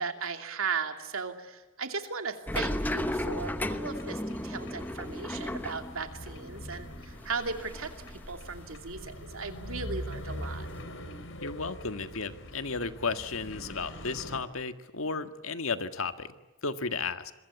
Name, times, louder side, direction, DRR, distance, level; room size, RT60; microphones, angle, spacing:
voice 1, 0.0-7.9 8.3-10.7, right 5 dB, 90° right, 6 dB, 2.7 m, -36 dB
sound 1, 2.5-14.4, equal, 70° left, 3.5 m, -43 dB
sound 2, 2.5-9.2 9.5-10.8, left 1 dB, 10° left, 0.9 m, -36 dB
voice 2, 11.4-16.3 16.6-17.3, left 4 dB, 90° left, 9 dB, 1.7 m, -34 dB
26.5 x 23.0 x 8.4 m, 1.1 s
head